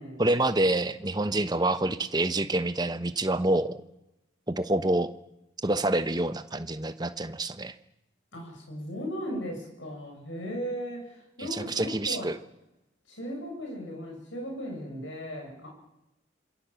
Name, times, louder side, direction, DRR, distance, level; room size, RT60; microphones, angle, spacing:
voice 1, 0.2-3.8 4.5-5.1 5.6-7.7 11.8-12.3, right 2 dB, 20° right, 10 dB, 1.1 m, -27 dB
voice 2, 8.3-12.3 13.1-15.7, equal, 85° left, 0 dB, 7.5 m, -37 dB
27.0 x 23.5 x 7.1 m, 0.90 s
head